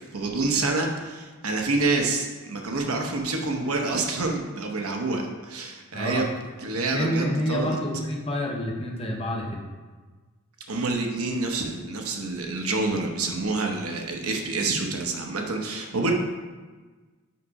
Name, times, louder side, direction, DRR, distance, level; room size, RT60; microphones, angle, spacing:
voice 1, 0.1-6.3 6.6-7.8 10.7-16.1, right 3 dB, 90° right, 2 dB, 1.0 m, -27 dB
voice 2, 5.9-6.3 6.9-9.6, equal, 25° left, 0 dB, 0.9 m, -28 dB
5.8 x 5.2 x 4.8 m, 1.3 s
head